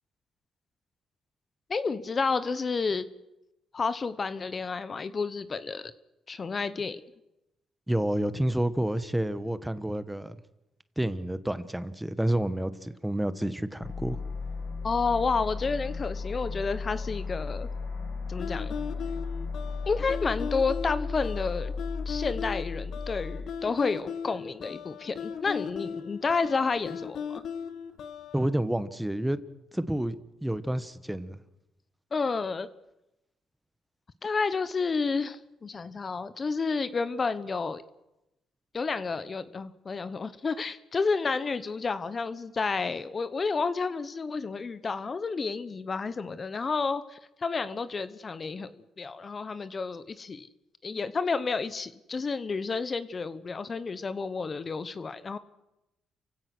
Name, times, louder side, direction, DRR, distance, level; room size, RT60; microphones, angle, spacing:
voice 1, 1.7-3.1 3.7-5.9 6.3-7.0 14.8-17.7 18.3-18.8 19.9-21.7 22.1-27.4 32.1-32.7 34.2-37.8 38.7-50.5 50.8-55.4, left 4 dB, 35° left, 1.0 m, -30 dB
voice 2, 7.9-10.4 11.0-14.2 28.3-29.4 29.7-30.1 30.4-31.4, right 1 dB, 5° right, 1.1 m, -29 dB
sound 1, 13.8-23.5, left 4 dB, 85° left, 5.3 m, -35 dB
sound 2, 18.4-28.5, left 7 dB, 70° left, 1.3 m, -38 dB
29.0 x 16.5 x 6.2 m
cardioid pair, 90°, 0 cm